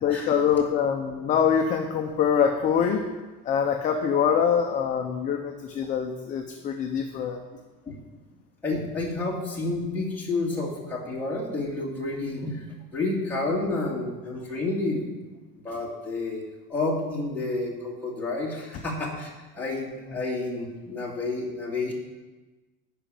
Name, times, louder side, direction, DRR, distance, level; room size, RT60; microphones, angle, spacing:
voice 1, 0.0-3.0 3.4-7.4, left 7 dB, 25° left, 3 dB, 0.6 m, -24 dB
voice 2, 8.6-12.7 12.9-15.1 15.6-16.4 16.7-19.3 19.5-21.9, left 2 dB, 5° left, -6 dB, 2.1 m, -30 dB
11.5 x 5.1 x 8.5 m, 1.2 s
cardioid pair, 175°, 31 cm